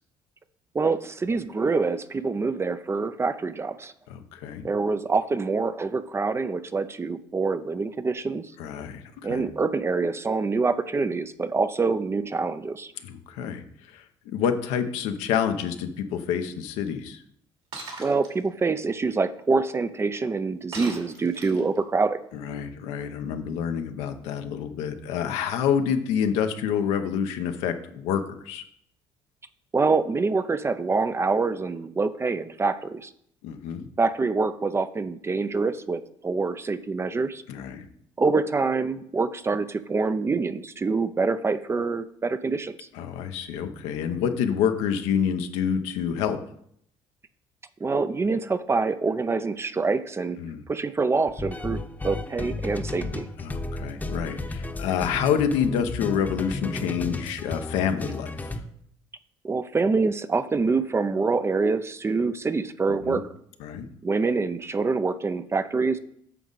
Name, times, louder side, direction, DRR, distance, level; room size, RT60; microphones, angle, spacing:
voice 1, 0.7-3.9 4.6-8.5 9.2-12.9 18.0-22.2 29.7-33.1 34.0-37.4 38.2-42.8 47.8-50.4 50.7-53.3 59.4-63.2 64.0-66.0, right 4 dB, 25° right, 12 dB, 0.5 m, -25 dB
voice 2, 4.1-4.7 8.6-9.4 13.0-17.2 22.3-28.6 33.4-33.9 37.5-37.9 42.9-46.4 50.4-50.6 53.4-58.6 63.1-63.2 63.6-63.9, left 8 dB, 85° left, 7 dB, 0.8 m, -28 dB
Shatter, 17.7-18.3 20.7-21.8, right 3 dB, 65° right, 2.8 m, -38 dB
sound 1, 51.3-58.6, left 2 dB, 15° left, 0.9 m, -33 dB
9.1 x 6.2 x 4.0 m, 0.69 s
supercardioid pair, 80°, 11 cm